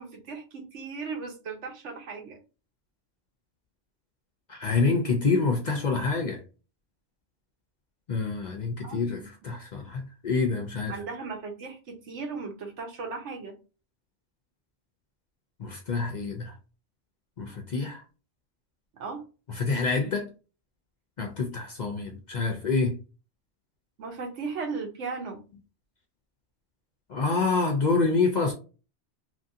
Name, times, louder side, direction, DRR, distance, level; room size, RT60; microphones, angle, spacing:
voice 1, 0.0-2.4 8.8-9.3 10.9-13.5 18.9-19.2 24.0-25.4, right 4 dB, 80° right, 1.2 m, -37 dB
voice 2, 4.5-6.4 8.1-11.0 15.6-16.5 17.4-18.0 19.6-20.3 21.2-23.0 27.1-28.5, left 4 dB, 55° left, 0.5 m, -27 dB
2.9 x 2.6 x 2.6 m
omnidirectional pair, 1.2 m